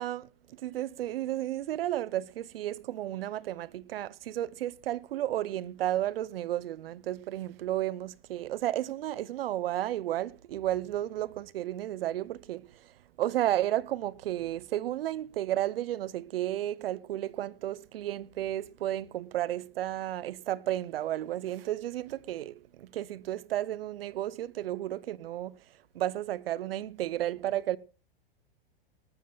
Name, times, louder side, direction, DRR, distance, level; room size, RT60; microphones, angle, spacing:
voice 1, 0.0-27.8, right 13 dB, 75° right, 0.7 m, -33 dB
19.0 x 13.5 x 2.3 m
hypercardioid pair, 110°, 29 cm